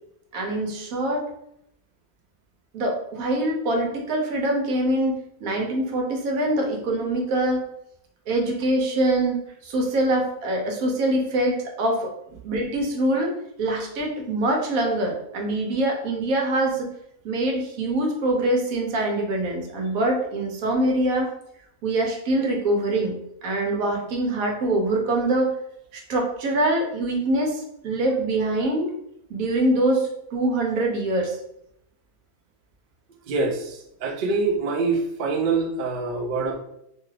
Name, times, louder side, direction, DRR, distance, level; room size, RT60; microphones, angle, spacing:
voice 1, 0.3-1.3 2.7-7.7 8.3-12.1 12.4-13.3 13.6-16.9 17.2-21.3 21.8-25.5 25.9-28.9 29.3-31.4, right 1 dB, 90° right, 1 dB, 1.2 m, -24 dB
voice 2, 33.3-33.8 34.0-36.5, right 4 dB, 65° right, 2 dB, 0.5 m, -25 dB
2.8 x 2.3 x 3.2 m, 0.77 s
omnidirectional pair, 1.4 m